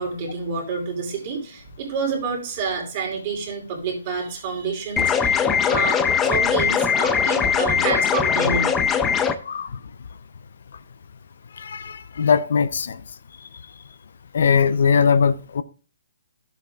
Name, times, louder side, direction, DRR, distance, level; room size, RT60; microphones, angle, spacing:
voice 1, 0.0-8.7, right 4 dB, 35° right, 2.7 m, -28 dB
sound 1, 5.0-9.3, left 7 dB, 10° left, 0.4 m, -20 dB
voice 2, 11.6-13.0 14.3-15.6, left 6 dB, 65° left, 0.5 m, -20 dB
11.5 x 7.3 x 2.3 m
hypercardioid pair, 165°, 0 cm